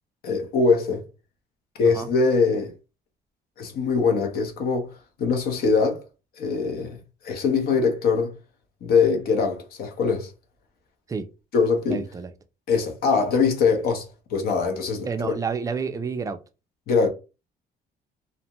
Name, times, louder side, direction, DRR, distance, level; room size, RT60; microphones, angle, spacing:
voice 1, 0.2-1.1 1.8-2.7 3.6-4.9 5.2-6.0 6.4-7.0 7.2-8.3 8.8-10.3 11.5-12.0 12.7-15.4 16.9-17.1, left 5 dB, 65° left, 0.8 m, -22 dB
voice 2, 11.8-12.3 15.0-16.4, right 5 dB, 20° right, 0.4 m, -29 dB
2.6 x 2.1 x 2.9 m
cardioid pair, 110°, 17 cm